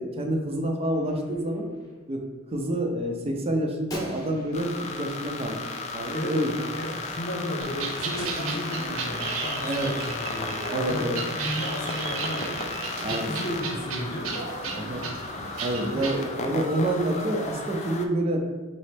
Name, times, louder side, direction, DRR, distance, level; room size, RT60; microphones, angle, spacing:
voice 1, 0.0-1.7 2.1-2.2 2.5-4.7 5.0-5.6 5.9-6.5 9.6-9.9 10.7-11.2 13.0-13.3 14.8-15.1 15.6-18.4, right 1 dB, 30° right, 2 dB, 0.5 m, -27 dB
Gunshot gunfire, 0.9-1.9 3.9-6.3 8.2-9.2, left 2 dB, 20° left, 0.8 m, -43 dB
sound 1, 4.5-18.1, left 3 dB, 35° left, 0.3 m, -35 dB
voice 2, 6.1-12.6 13.1-14.4 15.9-16.3, equal, 90° left, 1 dB, 0.8 m, -34 dB
sound 2, 7.6-16.2, right 4 dB, 90° right, 0.5 m, -35 dB
4.1 x 3.0 x 3.3 m, 1.3 s
head